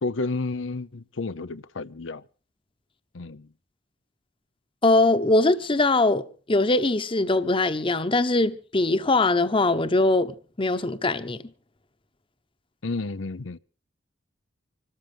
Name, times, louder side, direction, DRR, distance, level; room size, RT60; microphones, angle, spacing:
voice 1, 0.0-2.2 3.1-3.5 12.8-13.6, left 3 dB, 90° left, 0.8 m, -31 dB
voice 2, 4.8-11.4, left 2 dB, 30° left, 1.0 m, -22 dB
26.0 x 13.5 x 3.4 m
head